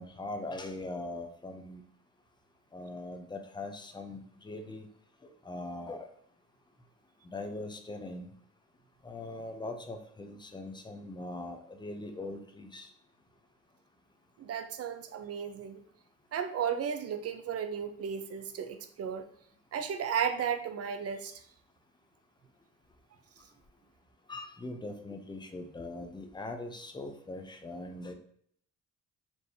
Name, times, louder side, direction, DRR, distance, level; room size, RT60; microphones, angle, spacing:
voice 1, 0.0-1.8 2.7-4.9 5.2-6.1 7.2-8.3 9.0-12.9 24.3-28.1, left 2 dB, 15° left, 5 dB, 0.6 m, -41 dB
voice 2, 14.4-15.8 16.3-19.2 19.7-21.4, right 7 dB, 50° right, 8 dB, 0.6 m, -34 dB
4.4 x 3.2 x 2.8 m, 0.64 s
cardioid pair, 90°, 30 cm